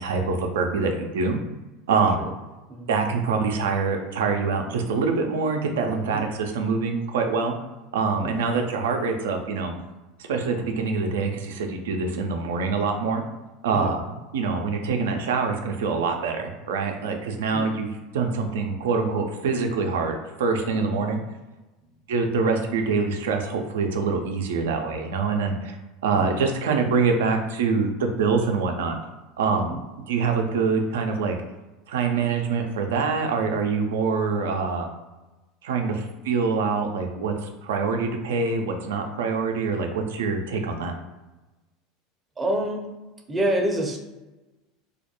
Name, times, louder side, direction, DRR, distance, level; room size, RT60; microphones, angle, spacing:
voice 1, 0.0-1.4 1.9-2.3 2.9-7.5 7.9-9.7 10.2-13.2 13.6-14.0 14.3-17.9 18.1-21.2 22.1-25.8 26.0-28.9 29.4-29.8 30.1-31.4 31.9-34.9 35.6-40.9, right 4 dB, 85° right, 4 dB, 0.4 m, -25 dB
voice 2, 1.9-2.3 2.7-2.9 6.1-6.2 8.2-8.6 13.7-14.0 17.5-17.8 20.7-21.1 26.1-26.4 29.5-29.8 42.4-42.9 43.3-44.0, right 1 dB, 20° right, 1 dB, 0.5 m, -28 dB
2.3 x 2.1 x 2.9 m, 1.1 s
hypercardioid pair, 100°, 0 cm